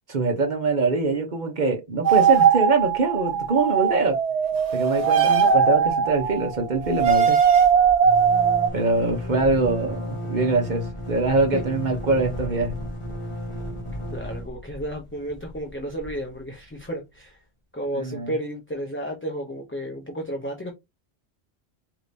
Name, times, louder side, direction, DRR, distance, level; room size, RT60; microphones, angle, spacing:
voice 1, 0.1-4.2 4.7-7.4 8.7-12.7 17.9-18.3, right 3 dB, 50° right, 0.9 m, -23 dB
sound 1, 2.0-8.7, right 7 dB, 90° right, 1.1 m, -20 dB
sound 2, 5.2-5.5 5.8-5.9 6.1-16.8, equal, 30° left, 1.2 m, -35 dB
voice 2, 14.1-17.4 17.7-20.7, equal, 15° left, 0.7 m, -33 dB
5.0 x 2.9 x 2.6 m
omnidirectional pair, 1.1 m